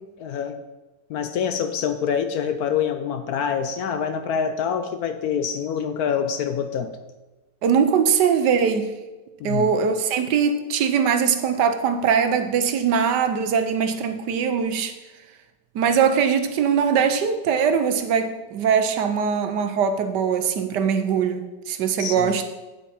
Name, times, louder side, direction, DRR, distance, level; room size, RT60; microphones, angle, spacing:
voice 1, 0.2-0.6 1.1-7.0 9.4-9.7 22.0-22.3, left 7 dB, 70° left, 9 dB, 1.0 m, -26 dB
voice 2, 7.6-8.9 9.4-14.9 15.7-22.4, right 7 dB, 75° right, 9 dB, 1.4 m, -21 dB
8.5 x 8.4 x 4.3 m, 1.1 s
omnidirectional pair, 1.9 m